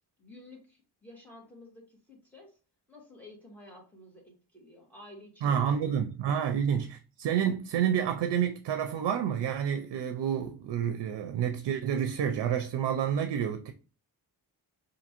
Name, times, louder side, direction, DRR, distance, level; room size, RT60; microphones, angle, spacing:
voice 1, 0.2-2.6 2.9-5.9 6.2-6.4, left 1 dB, 5° left, 1.5 m, -52 dB
voice 2, 5.4-13.7, right 8 dB, 80° right, 0.5 m, -29 dB
5.1 x 2.6 x 2.9 m
wide cardioid pair, 130°, 41 cm